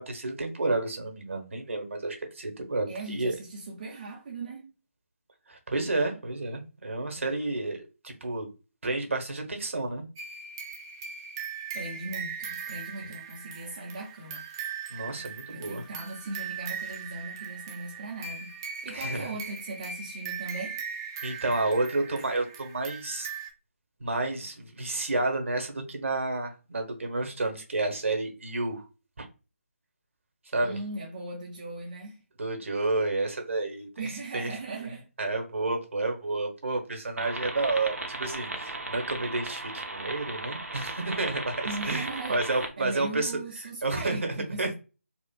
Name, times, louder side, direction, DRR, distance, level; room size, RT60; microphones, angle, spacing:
voice 1, 0.0-3.3 5.5-8.5 8.8-10.0 14.9-15.9 18.9-19.3 21.2-23.3 24.0-28.8 29.2-29.3 30.5-30.8 32.4-34.1 34.3-34.5 35.2-43.3 43.6-44.2 44.6-44.7, right 2 dB, 60° right, 1.1 m, -30 dB
voice 2, 2.9-4.7 11.7-14.4 15.5-18.5 18.8-20.8 30.6-32.2 34.0-35.1 41.6-44.7, right 2 dB, 35° right, 0.8 m, -38 dB
sound 1, 10.2-23.5, right 6 dB, 15° right, 0.3 m, -39 dB
sound 2, 37.2-42.7, right 2 dB, 85° right, 0.8 m, -36 dB
4.3 x 2.4 x 2.3 m
figure-of-eight pair, 155°, 8 cm